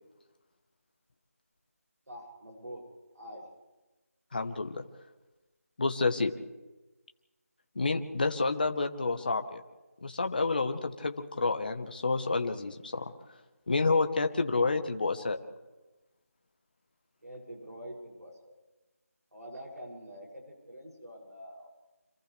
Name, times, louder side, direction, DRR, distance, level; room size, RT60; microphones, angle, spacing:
voice 1, 2.1-2.9 3.1-3.5 17.2-18.6 19.3-21.7, equal, 85° right, 0 dB, 7.2 m, -45 dB
voice 2, 4.3-4.8 5.8-6.3 7.7-9.6 10.0-13.1 13.7-15.4, left 3 dB, 35° left, 6 dB, 1.3 m, -29 dB
29.5 x 26.5 x 3.4 m, 1.1 s
figure-of-eight pair, 175°, 8 cm